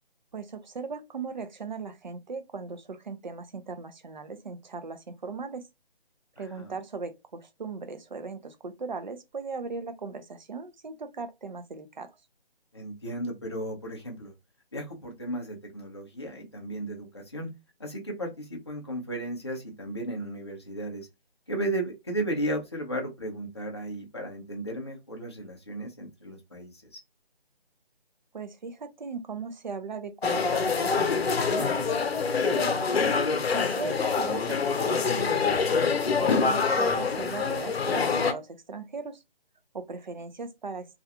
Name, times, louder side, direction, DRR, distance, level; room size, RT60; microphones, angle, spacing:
voice 1, 0.3-5.6 6.4-12.1 28.3-31.9 32.4-32.9 33.5-35.6 36.2-39.2 39.7-40.9, right 4 dB, 50° right, 0.4 m, -38 dB
voice 2, 6.4-6.7 12.7-14.3 14.7-17.5 17.8-21.1 21.5-27.0 32.8-33.1, right 1 dB, 25° left, 0.4 m, -35 dB
sound 1, 30.2-38.3, left 5 dB, 75° left, 0.6 m, -25 dB
2.3 x 2.2 x 2.7 m
figure-of-eight pair, 165°, 31 cm